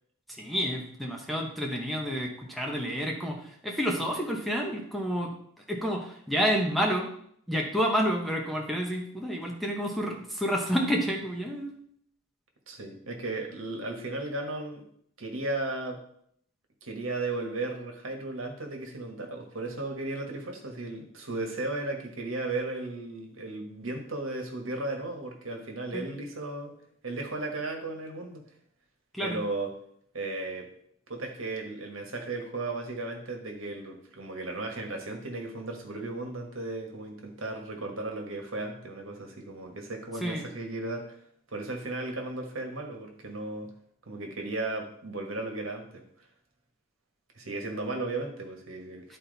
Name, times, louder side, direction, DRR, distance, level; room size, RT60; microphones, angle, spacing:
voice 1, 0.3-7.1 7.5-11.7 25.9-26.1 29.1-29.4 40.2-40.5 49.1-49.2, equal, ahead, 0 dB, 1.0 m, -29 dB
voice 2, 12.7-14.8 15.2-16.0 16.8-26.7 27.0-28.4 29.2-29.7 30.1-30.7 31.1-41.2 41.5-43.7 44.1-46.0 47.4-49.2, right 2 dB, 65° right, 2 dB, 1.5 m, -35 dB
11.0 x 4.3 x 4.1 m, 0.67 s
head